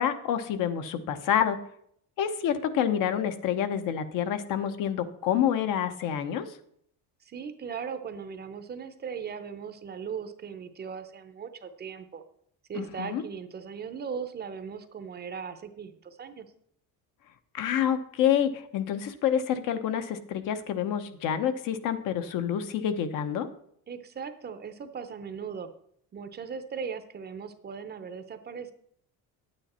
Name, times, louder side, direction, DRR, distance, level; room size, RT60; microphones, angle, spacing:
voice 1, 0.0-1.6 2.2-6.5 12.7-13.2 17.5-23.5, left 9 dB, 65° left, 9 dB, 1.0 m, -28 dB
voice 2, 7.2-12.2 12.7-16.5 23.9-25.7 26.1-28.7, right 6 dB, 30° right, 10 dB, 0.6 m, -38 dB
9.1 x 8.9 x 4.3 m, 0.67 s
cardioid pair, 160°, 35 cm